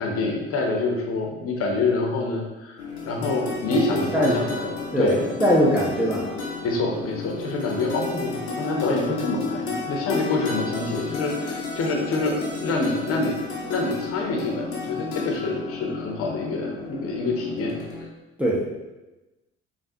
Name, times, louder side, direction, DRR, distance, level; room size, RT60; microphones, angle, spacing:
voice 1, 0.0-4.7 5.0-5.2 6.6-13.3 13.7-17.8, left 3 dB, 45° left, 1 dB, 0.7 m, -26 dB
sound 1, 2.8-18.0, left 4 dB, 90° left, 0.6 m, -32 dB
voice 2, 3.9-4.4 4.9-6.3 18.4-18.8, equal, 5° right, -3 dB, 0.4 m, -22 dB
3.3 x 2.3 x 2.7 m, 1.1 s
hypercardioid pair, 55°, 32 cm